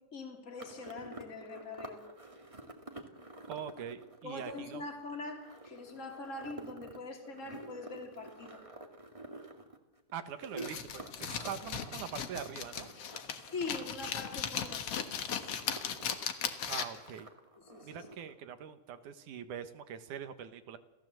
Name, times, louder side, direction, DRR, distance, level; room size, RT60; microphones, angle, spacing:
voice 1, 0.1-2.0 4.2-8.6 13.5-15.6 17.6-18.0, left 3 dB, 25° left, 3 dB, 3.1 m, -43 dB
sound 1, 0.6-14.3 14.6-16.1 16.4-18.3, right 1 dB, 15° right, 1.5 m, -50 dB
voice 2, 3.5-4.9 10.1-12.9 16.6-17.3 17.8-20.8, right 8 dB, 80° right, 9 dB, 2.8 m, -43 dB
sound 2, 10.6-17.1, left 8 dB, 55° left, 2.3 m, -37 dB
28.5 x 15.5 x 7.7 m, 1.1 s
omnidirectional pair, 3.5 m